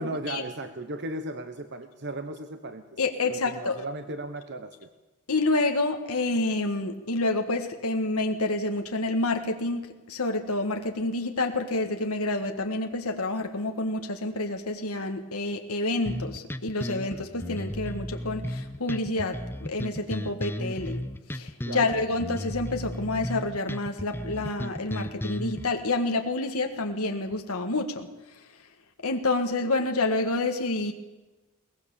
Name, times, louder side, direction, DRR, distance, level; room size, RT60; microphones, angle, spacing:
voice 1, 0.0-2.8 3.3-4.9 21.6-21.9, right 1 dB, 50° right, 9 dB, 1.2 m, -36 dB
voice 2, 3.0-3.8 5.3-21.0 21.3-28.1 29.0-30.9, left 2 dB, 70° left, 4 dB, 1.6 m, -28 dB
sound 1, 16.1-25.7, left 1 dB, 10° left, 0.7 m, -35 dB
22.0 x 19.0 x 7.0 m, 1.1 s
head